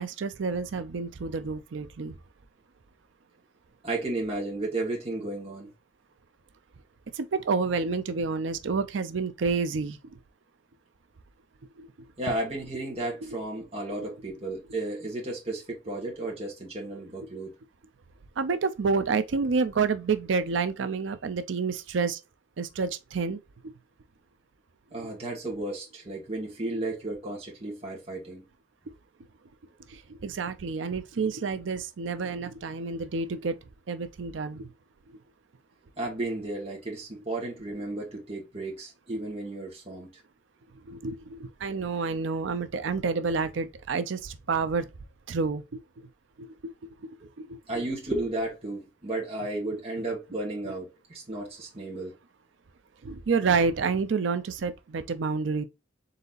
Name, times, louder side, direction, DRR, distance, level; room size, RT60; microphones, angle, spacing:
voice 1, 0.0-2.2 7.1-10.0 11.8-11.9 18.4-22.2 22.6-23.4 25.0-25.1 26.7-26.8 29.9-33.5 33.9-34.7 40.7-44.9 45.3-45.6 46.0-46.1 46.4-46.7 47.4-47.8 53.0-55.6, right 4 dB, 85° right, 0.5 m, -29 dB
voice 2, 3.8-5.7 12.2-17.5 24.9-28.4 36.0-40.1 47.7-52.1, right 2 dB, 35° right, 1.6 m, -33 dB
4.1 x 3.9 x 2.5 m
head